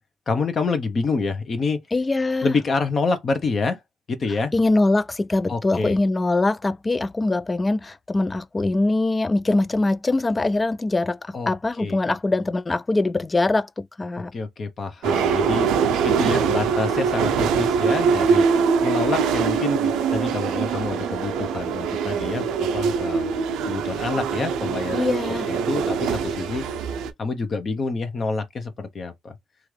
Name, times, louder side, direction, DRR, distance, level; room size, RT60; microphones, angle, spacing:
voice 1, 0.3-1.8 2.4-3.8 4.1-4.5 5.5-6.0 11.3-11.5 11.8-12.0 14.3-15.7 16.0-18.5 18.8-23.3 23.6-26.7 27.2-29.3, left 4 dB, 45° left, 0.8 m, -27 dB
voice 2, 1.9-2.5 4.5-14.3 24.9-25.5, left 2 dB, 25° left, 0.3 m, -22 dB
sound 1, 15.0-27.1, right 6 dB, 90° right, 0.5 m, -23 dB
2.9 x 2.5 x 3.2 m
cardioid pair, 90°, 0 cm